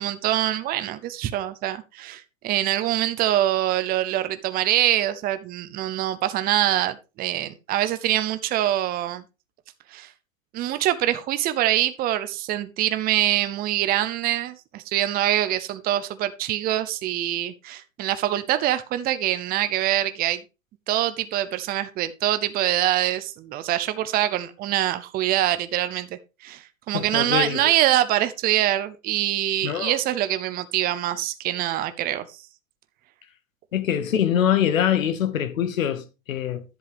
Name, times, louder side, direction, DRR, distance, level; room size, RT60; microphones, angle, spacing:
voice 1, 0.0-9.2 9.9-10.1 10.5-20.4 20.9-32.3, right 13 dB, 25° right, 0.7 m, -24 dB
voice 2, 26.9-27.7 29.6-29.9 33.7-36.6, left 9 dB, 75° left, 1.6 m, -24 dB
11.0 x 7.5 x 3.5 m
hypercardioid pair, 120°, 40 cm